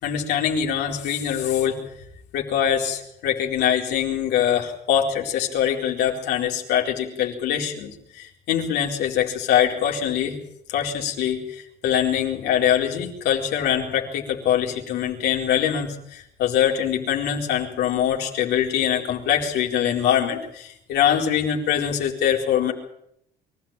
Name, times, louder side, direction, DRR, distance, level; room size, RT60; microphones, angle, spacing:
voice 1, 0.0-1.8 2.3-10.4 10.7-22.7, left 9 dB, 80° left, 0 dB, 4.3 m, -23 dB
24.0 x 14.5 x 9.1 m, 0.76 s
cardioid pair, 110°, 17 cm